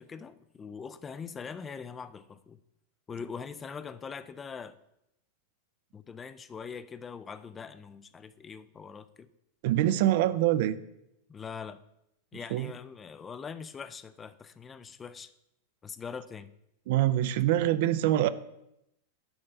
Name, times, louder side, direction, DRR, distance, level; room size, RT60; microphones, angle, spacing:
voice 1, 0.0-2.6 3.1-4.8 5.9-9.3 11.3-11.8 12.3-15.3 15.8-16.5, left 6 dB, 20° left, 13 dB, 0.4 m, -42 dB
voice 2, 9.6-10.8 12.5-12.7 16.9-18.3, right 13 dB, 50° right, 14 dB, 0.4 m, -25 dB
7.0 x 4.3 x 6.5 m, 0.83 s
figure-of-eight pair, 90°, 0 cm